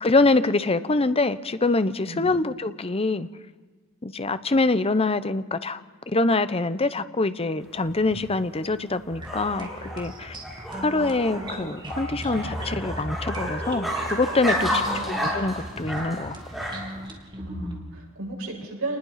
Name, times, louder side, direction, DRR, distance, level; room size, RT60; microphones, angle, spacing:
voice 1, 0.0-3.3 4.0-5.8 6.1-9.7 10.0-10.4 10.8-14.7 15.1-16.4, left 3 dB, 30° left, 13 dB, 0.8 m, -24 dB
voice 2, 2.0-2.4 14.5-15.2 17.4-19.0, right 2 dB, 80° right, -2 dB, 8.0 m, -34 dB
sound 1, 7.6-17.1, equal, ahead, 6.8 m, -32 dB
sound 2, 9.1-17.8, equal, 20° right, 3.0 m, -38 dB
27.5 x 20.0 x 5.8 m, 1.4 s
head